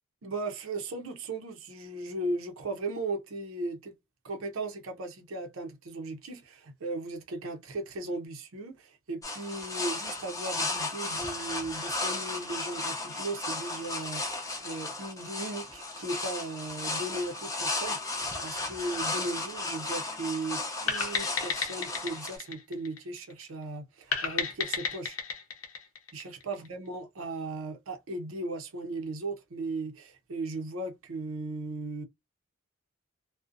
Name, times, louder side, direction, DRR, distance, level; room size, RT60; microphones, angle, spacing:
voice 1, 0.2-3.9 4.2-18.0 18.4-25.2 26.1-32.0, right 2 dB, 80° right, 0.6 m, -37 dB
sound 1, 9.2-22.4, left 2 dB, 15° left, 0.5 m, -35 dB
sound 2, 20.9-23.4 24.1-26.7, left 6 dB, 80° left, 0.7 m, -33 dB
2.5 x 2.1 x 2.5 m
head